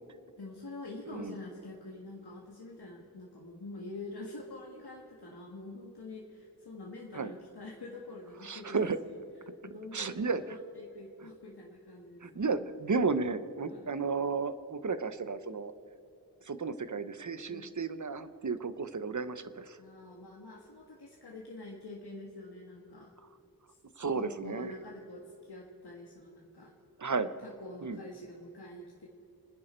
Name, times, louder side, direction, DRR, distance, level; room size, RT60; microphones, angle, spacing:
voice 1, 0.4-8.8 9.0-9.1 9.6-12.4 13.7-13.9 17.5-17.7 19.8-23.1 23.7-23.8 24.1-26.7 27.4-29.1, left 2 dB, 70° left, -2 dB, 1.7 m, -46 dB
voice 2, 8.4-9.0 9.9-10.6 12.2-15.7 16.4-19.8 24.0-24.7 27.0-27.3 27.8-28.0, right 4 dB, 45° right, 12 dB, 0.8 m, -33 dB
28.5 x 10.0 x 4.4 m, 2.7 s
wide cardioid pair, 60°, 40 cm